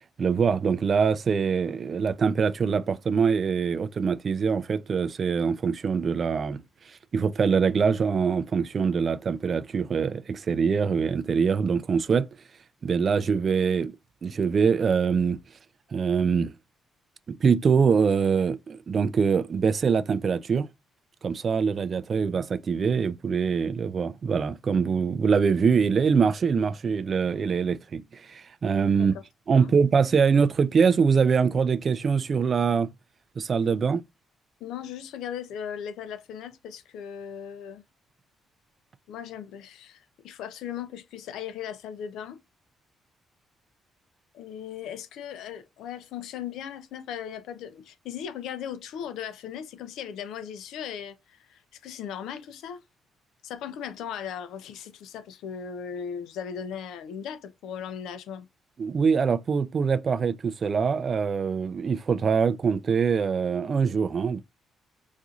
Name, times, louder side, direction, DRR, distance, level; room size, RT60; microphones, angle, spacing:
voice 1, 0.2-12.3 12.8-13.9 14.2-15.4 15.9-16.5 17.3-20.7 21.2-29.1 29.5-32.9 33.4-34.0 58.8-64.4, right 6 dB, 45° right, 0.3 m, -24 dB
voice 2, 34.6-37.8 39.1-42.4 44.3-52.8 53.4-58.5, left 8 dB, 85° left, 0.5 m, -38 dB
4.2 x 2.5 x 2.4 m
cardioid pair, 90°, 0 cm